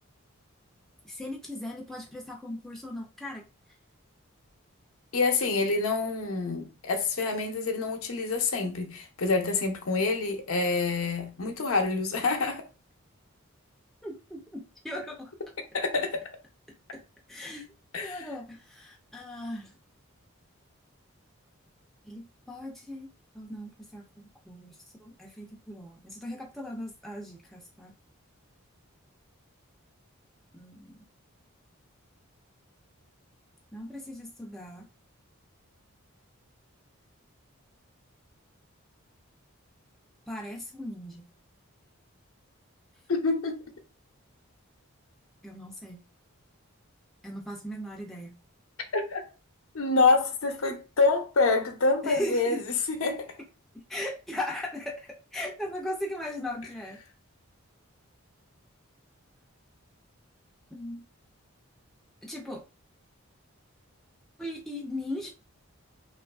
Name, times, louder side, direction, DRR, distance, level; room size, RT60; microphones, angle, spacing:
voice 1, 1.0-3.4 14.0-15.3 16.9-17.0 17.3-17.7 18.0-19.7 22.1-23.1 23.3-24.7 25.0-27.9 30.5-31.0 33.7-34.9 40.3-41.3 45.4-46.0 47.2-48.4 52.0-52.6 53.9-57.0 60.7-61.0 62.2-62.6 64.4-65.3, left 1 dB, ahead, 0.4 m, -38 dB
voice 2, 5.1-12.7 15.7-16.3 17.9-18.2 43.1-43.6 48.9-49.2 49.7-52.6 52.9-53.3, left 3 dB, 75° left, 0.6 m, -26 dB
2.9 x 2.4 x 2.3 m
head